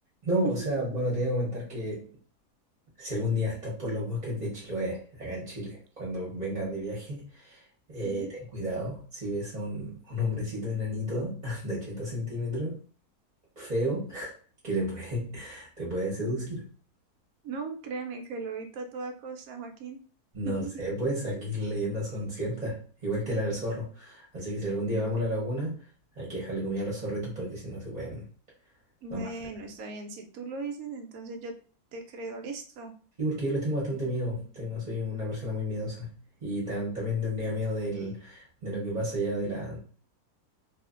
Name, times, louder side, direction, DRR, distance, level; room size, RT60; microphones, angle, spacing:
voice 1, 0.2-2.1 3.0-7.6 7.9-8.2 8.5-12.8 13.6-14.3 14.6-16.7 20.3-25.8 26.2-28.2 29.1-29.3 33.2-36.1 36.4-39.8, equal, 30° right, -5 dB, 0.9 m, -32 dB
voice 2, 8.0-8.4 17.4-20.0 20.4-20.8 29.0-31.5 31.9-32.9, right 4 dB, 75° right, 5 dB, 1.0 m, -38 dB
2.8 x 2.4 x 2.4 m, 0.41 s
omnidirectional pair, 1.6 m